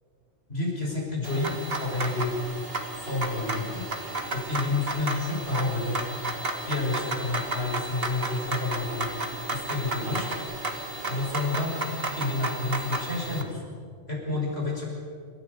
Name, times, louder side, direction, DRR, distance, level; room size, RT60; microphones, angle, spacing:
voice 1, 0.5-2.4 2.9-3.8 4.3-6.0 6.7-9.1 9.5-10.3 11.1-11.7 12.1-13.6 14.1-14.8, left 3 dB, 60° left, -2 dB, 6.0 m, -29 dB
sound 1, 1.2-13.4, right 2 dB, 55° right, 2.0 m, -33 dB
27.0 x 14.0 x 8.1 m, 2.2 s
omnidirectional pair, 1.2 m